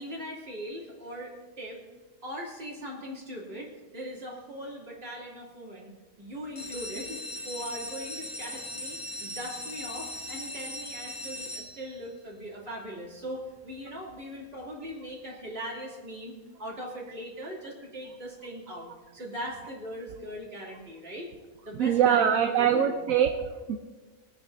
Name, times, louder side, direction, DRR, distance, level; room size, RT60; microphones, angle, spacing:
voice 1, 0.0-1.8 2.2-5.9 6.2-21.3 21.6-22.9 23.3-23.4, equal, 40° right, -5 dB, 3.2 m, -40 dB
sound 1, 6.4-12.2 12.8-13.3 13.7-13.8 14.0-14.1 14.5-14.7, left 1 dB, 20° left, 0.7 m, -39 dB
voice 2, 21.7-23.8, right 9 dB, 70° right, 5 dB, 1.1 m, -23 dB
23.5 x 9.0 x 2.7 m, 1.3 s
omnidirectional pair, 1.6 m